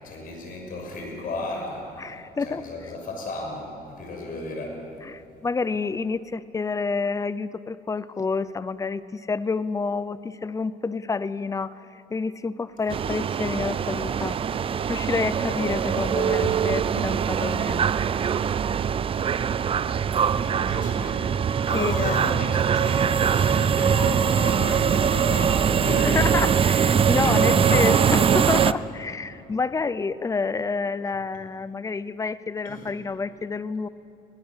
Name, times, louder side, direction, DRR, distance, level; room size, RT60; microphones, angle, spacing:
voice 1, 0.0-4.8 12.8-13.2 15.3-15.8 18.3-18.5 19.8-26.4 27.2-28.1 32.6-32.9, left 2 dB, 55° left, 1 dB, 6.2 m, -34 dB
voice 2, 2.0-2.6 5.0-14.5 14.9-17.9 21.7-22.2 26.0-33.9, left 4 dB, 20° left, 16 dB, 0.6 m, -28 dB
sound 1, 12.9-28.7, right 7 dB, 35° right, 0.5 m, -22 dB
21.0 x 18.0 x 7.4 m, 3.0 s
cardioid pair, 110°, 17 cm